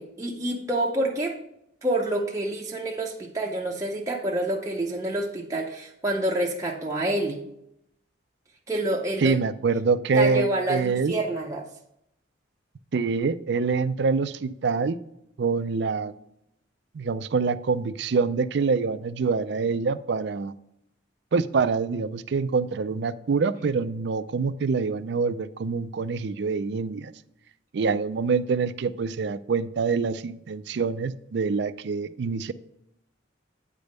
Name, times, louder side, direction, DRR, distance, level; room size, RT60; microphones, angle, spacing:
voice 1, 0.0-1.4 1.8-7.4 8.7-9.3 10.1-11.7, right 1 dB, 15° right, -2 dB, 0.6 m, -27 dB
voice 2, 9.2-11.1 12.9-15.0 15.4-16.1 16.9-20.5 21.3-27.1 27.7-32.5, right 4 dB, 60° right, 14 dB, 0.4 m, -25 dB
9.0 x 3.4 x 6.5 m, 0.78 s
head